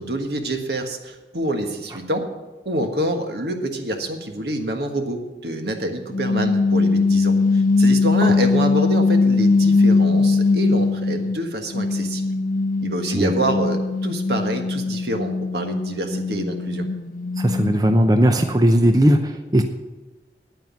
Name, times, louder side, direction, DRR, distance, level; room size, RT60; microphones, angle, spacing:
voice 1, 0.0-2.3 2.6-12.2 12.8-16.9, right 1 dB, 70° right, 5 dB, 1.5 m, -27 dB
sound 1, 6.1-11.4 11.7-18.0, left 3 dB, 50° left, 0.4 m, -20 dB
voice 2, 17.4-19.6, right 1 dB, 20° right, 6 dB, 0.6 m, -17 dB
9.6 x 9.3 x 7.3 m, 1.2 s
head